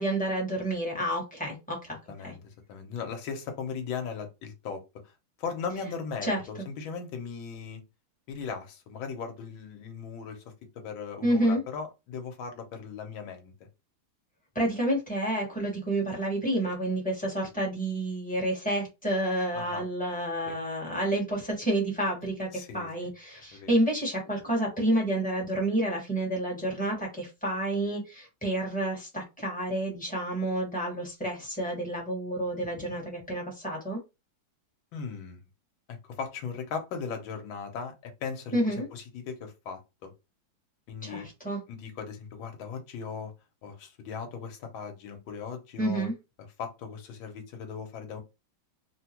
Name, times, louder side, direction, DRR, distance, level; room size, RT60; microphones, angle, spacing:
voice 1, 0.0-2.3 6.2-6.7 11.2-11.6 14.5-34.0 38.5-38.9 41.0-41.6 45.8-46.1, right 1 dB, 5° left, 1.1 m, -29 dB
voice 2, 2.1-4.8 5.4-7.8 8.3-10.4 10.7-13.5 19.5-19.8 20.5-20.6 22.5-22.9 23.5-23.7 34.9-35.4 35.9-40.1 40.9-41.3 41.7-43.3 43.6-46.1 46.6-48.2, left 6 dB, 75° left, 1.6 m, -38 dB
3.8 x 2.2 x 2.9 m
omnidirectional pair, 2.2 m